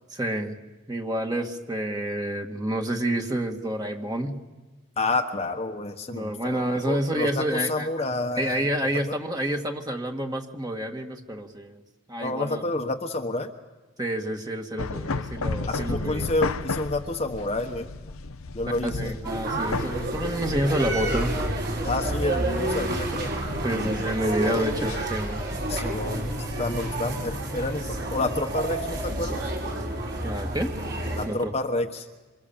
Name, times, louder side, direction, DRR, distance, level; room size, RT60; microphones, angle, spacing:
voice 1, 0.1-0.6 0.9-4.4 6.1-7.9 8.4-11.8 12.1-12.6 14.0-16.3 18.8-21.4 23.6-25.5 26.8-26.9 30.2-30.7 31.3-31.5, right 1 dB, 20° right, 3 dB, 1.9 m, -28 dB
voice 2, 5.0-8.6 9.1-9.2 12.2-13.5 15.7-17.9 18.5-19.2 21.8-23.3 24.4-24.7 25.7-26.3 26.6-29.4 31.2-32.1, left 2 dB, 30° left, 4 dB, 1.2 m, -29 dB
sound 1, 14.8-27.4, left 3 dB, 80° left, 0.9 m, -35 dB
sound 2, 19.2-31.3, right 1 dB, 50° right, 6.4 m, -30 dB
27.0 x 26.5 x 7.3 m, 1.2 s
head